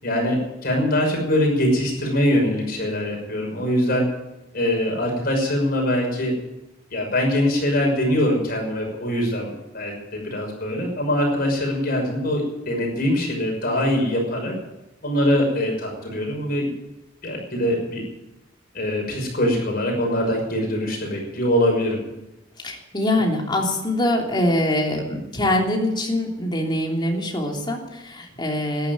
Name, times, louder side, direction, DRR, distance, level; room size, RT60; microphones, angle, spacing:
voice 1, 0.0-4.1 4.5-6.3 6.9-12.4 12.7-14.5 15.0-16.7 17.2-18.0 18.7-22.0, left 1 dB, 50° left, 1 dB, 6.2 m, -23 dB
voice 2, 22.6-28.9, left 1 dB, 25° left, 0 dB, 3.1 m, -23 dB
13.5 x 11.0 x 9.4 m, 0.96 s
head